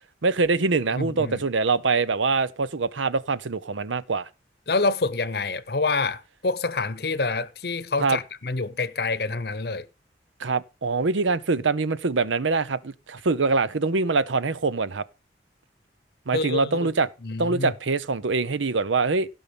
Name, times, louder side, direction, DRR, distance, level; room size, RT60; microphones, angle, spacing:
voice 1, 0.2-4.3 8.0-8.2 10.4-15.0 16.3-17.1 17.4-19.3, right 4 dB, 90° right, 0.8 m, -24 dB
voice 2, 0.9-1.4 4.7-9.9 16.3-16.9 17.2-17.7, left 3 dB, 55° left, 0.8 m, -27 dB
16.5 x 5.6 x 5.2 m
head